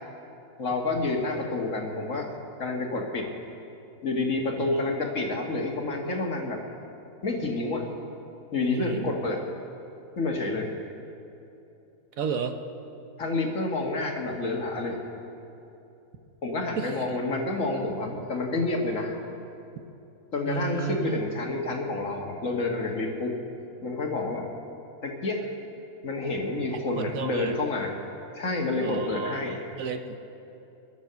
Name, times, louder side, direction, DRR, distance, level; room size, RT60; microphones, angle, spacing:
voice 1, 0.6-2.3 2.6-3.3 4.0-6.6 7.2-7.8 8.5-9.4 10.2-10.7 13.2-15.0 16.4-19.2 20.3-23.4 23.8-24.5 25.0-25.5 26.0-28.0 28.4-29.7, left 2 dB, 60° left, 1 dB, 2.0 m, -29 dB
voice 2, 8.7-9.1 12.2-12.6 16.8-17.0 20.5-21.2 26.7-27.5 28.8-30.2, right 6 dB, 70° right, 7 dB, 1.3 m, -32 dB
23.0 x 8.4 x 6.9 m, 2.8 s
omnidirectional pair, 1.5 m